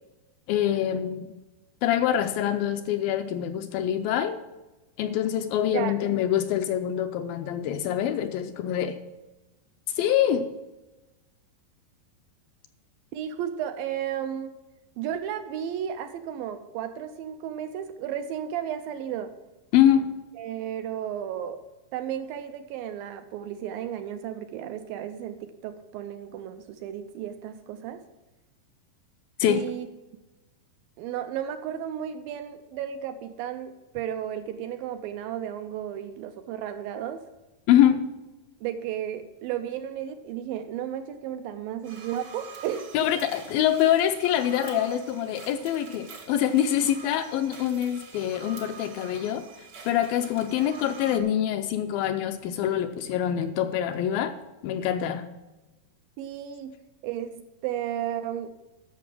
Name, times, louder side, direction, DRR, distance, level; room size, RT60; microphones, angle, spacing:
voice 1, 0.5-1.3 1.8-4.4 5.0-9.0 10.0-10.5 19.7-20.1 29.4-29.7 37.7-38.0 42.9-49.4 49.9-54.3 54.6-55.2, left 10 dB, 80° left, 8 dB, 2.2 m, -25 dB
voice 2, 13.1-14.6 15.0-19.3 20.4-21.6 21.9-28.0 29.4-29.9 31.0-37.2 38.6-43.3 56.2-56.8 57.0-58.5, right 10 dB, 80° right, 8 dB, 2.2 m, -33 dB
sound 1, 41.8-51.2, right 5 dB, 60° right, 1.1 m, -46 dB
11.5 x 6.9 x 6.0 m, 1.1 s
omnidirectional pair, 4.5 m